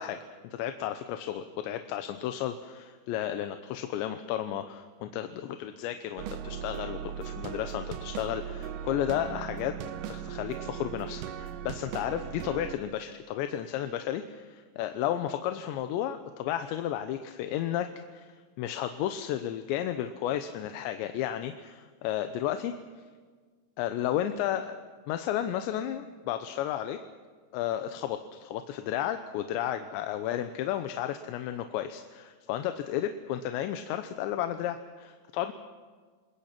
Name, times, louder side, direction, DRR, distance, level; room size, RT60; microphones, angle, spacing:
voice 1, 0.0-9.8 10.1-22.7 23.8-24.8 25.1-27.0 27.5-35.5, left 11 dB, 85° left, 8 dB, 3.2 m, -33 dB
sound 1, 6.2-12.8, right 9 dB, 90° right, 1.9 m, -38 dB
29.0 x 21.0 x 6.0 m, 1.5 s
omnidirectional pair, 5.0 m